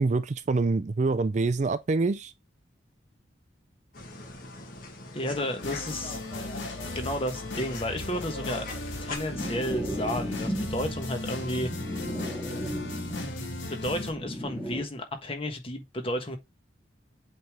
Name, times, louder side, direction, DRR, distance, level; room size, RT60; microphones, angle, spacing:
voice 1, 0.0-2.3, right 3 dB, 40° right, 0.4 m, -25 dB
sound 1, 3.9-9.2, left 2 dB, 50° left, 1.5 m, -42 dB
voice 2, 5.1-6.2 6.9-8.7 9.0-11.7 13.7-16.4, left 1 dB, 30° left, 1.2 m, -32 dB
sound 2, 5.6-14.1, left 2 dB, 80° left, 1.7 m, -37 dB
sound 3, 9.3-14.8, equal, 10° left, 1.8 m, -35 dB
8.0 x 3.4 x 3.6 m
head